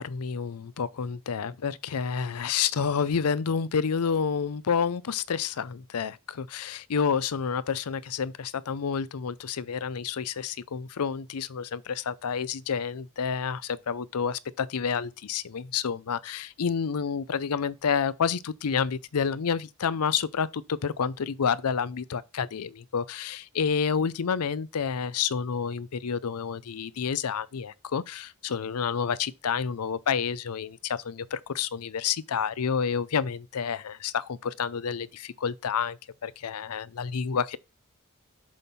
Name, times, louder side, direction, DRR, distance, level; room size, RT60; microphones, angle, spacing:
voice 1, 0.0-37.6, left 6 dB, 80° left, 0.5 m, -29 dB
7.7 x 5.5 x 4.2 m
head